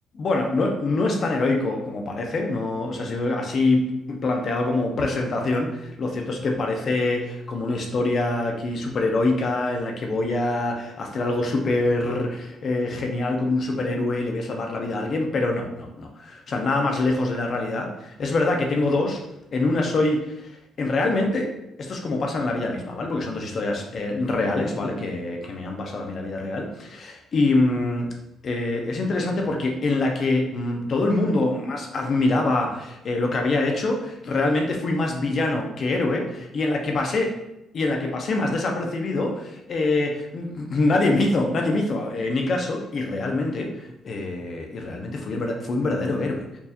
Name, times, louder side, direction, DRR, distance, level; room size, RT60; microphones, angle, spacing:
voice 1, 0.1-19.2 19.5-20.5 20.8-21.5 21.8-28.1 28.4-37.3 37.7-46.4, left 2 dB, 55° left, 2 dB, 0.7 m, -25 dB
4.5 x 2.8 x 2.5 m, 0.88 s
cardioid pair, 90°, 0 cm